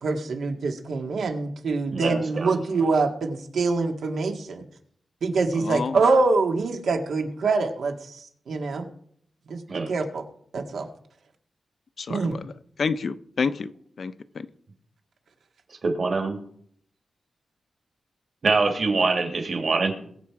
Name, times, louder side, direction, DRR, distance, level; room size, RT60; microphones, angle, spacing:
voice 1, 0.0-4.6 5.2-7.9 8.5-8.9 9.5-10.2 10.5-10.9 12.1-12.4, right 3 dB, 85° right, 1.9 m, -25 dB
voice 2, 1.9-2.6 9.7-9.9 15.8-16.4 18.4-19.9, right 3 dB, 50° right, 2.6 m, -24 dB
voice 3, 5.6-6.0 12.0-12.5 12.8-13.7 14.0-14.5, left 5 dB, 60° left, 0.7 m, -29 dB
21.5 x 7.5 x 4.8 m
wide cardioid pair, 120°, 0 cm